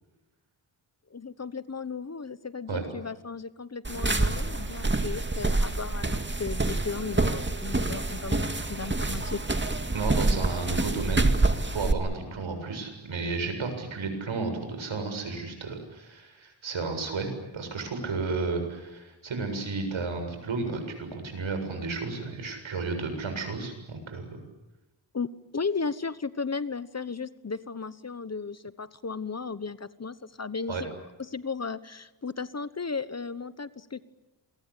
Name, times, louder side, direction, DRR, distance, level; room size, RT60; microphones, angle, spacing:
voice 1, 1.1-9.5 25.1-30.9 31.2-34.0, left 4 dB, 35° left, 15 dB, 1.1 m, -35 dB
sound 1, 3.8-11.9, right 2 dB, 25° right, 2.3 m, -27 dB
voice 2, 9.9-11.3 11.7-24.4 30.7-30.8, right 4 dB, 80° right, 6 dB, 7.5 m, -32 dB
28.5 x 23.0 x 8.5 m, 1.1 s
wide cardioid pair, 95°, 46 cm